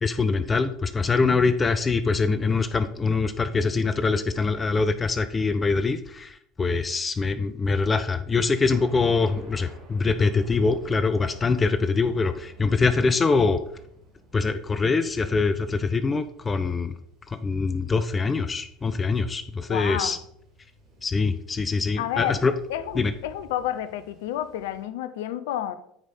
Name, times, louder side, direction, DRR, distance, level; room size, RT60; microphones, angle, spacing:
voice 1, 0.0-13.6 14.3-16.9 17.3-20.2 21.0-22.5 22.9-23.1, left 4 dB, 25° left, 12 dB, 0.5 m, -24 dB
Thunder, 8.7-24.8, right 1 dB, 50° right, 3.3 m, -51 dB
voice 2, 19.7-20.1 22.0-22.4 22.7-25.8, left 11 dB, 70° left, 13 dB, 0.6 m, -30 dB
9.3 x 5.1 x 4.2 m, 0.72 s
hypercardioid pair, 70°, 0 cm